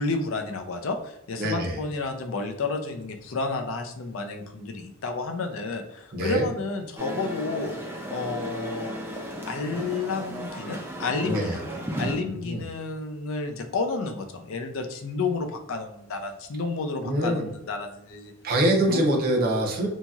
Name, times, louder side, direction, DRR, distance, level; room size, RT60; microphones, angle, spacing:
voice 1, 0.0-7.7 8.1-8.9 9.5-11.6 12.0-18.3 18.8-19.1, left 3 dB, 65° left, 6 dB, 0.4 m, -31 dB
voice 2, 1.4-1.8 6.1-6.5 11.2-11.6 12.2-12.6 17.0-17.5 18.4-19.9, right 1 dB, 45° right, 0 dB, 0.7 m, -24 dB
sound 1, 7.0-12.2, equal, 10° right, 0.4 m, -35 dB
2.8 x 2.7 x 2.3 m, 0.82 s
head